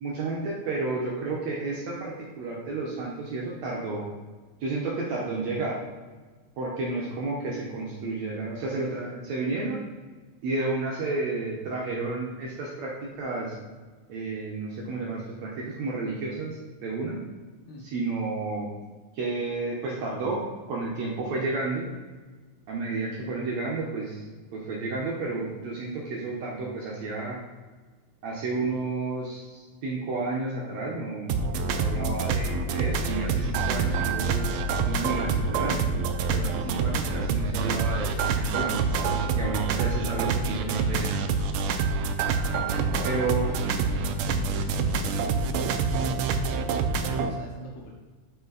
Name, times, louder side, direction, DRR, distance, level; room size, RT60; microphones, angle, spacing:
voice 1, 0.0-4.1 4.6-5.8 6.6-9.8 10.4-13.5 14.1-17.2 17.8-18.7 19.1-20.4 20.7-21.8 22.7-24.2 24.5-27.4 28.2-31.4 31.7-34.5 34.9-35.9 36.3-38.8 39.4-41.1 43.1-43.5, right 3 dB, 65° right, -3 dB, 2.1 m, -31 dB
sound 1, 31.3-47.3, right 4 dB, 80° right, 1.5 m, -26 dB
voice 2, 42.4-45.7 46.2-46.6 46.9-47.9, left 3 dB, 70° left, -1 dB, 2.2 m, -42 dB
8.5 x 5.1 x 4.0 m, 1.4 s
omnidirectional pair, 3.7 m